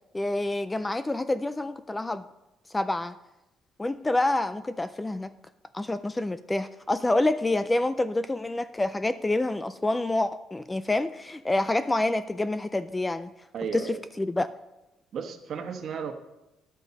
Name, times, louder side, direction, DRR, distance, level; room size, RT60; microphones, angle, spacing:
voice 1, 0.1-2.2 2.7-3.1 3.8-5.3 5.7-13.3 13.7-14.5, left 2 dB, 10° left, 13 dB, 0.3 m, -27 dB
voice 2, 13.5-14.0 15.1-16.1, right 6 dB, 50° right, 5 dB, 1.3 m, -34 dB
11.0 x 8.2 x 5.3 m, 0.95 s
cardioid pair, 135°, 0 cm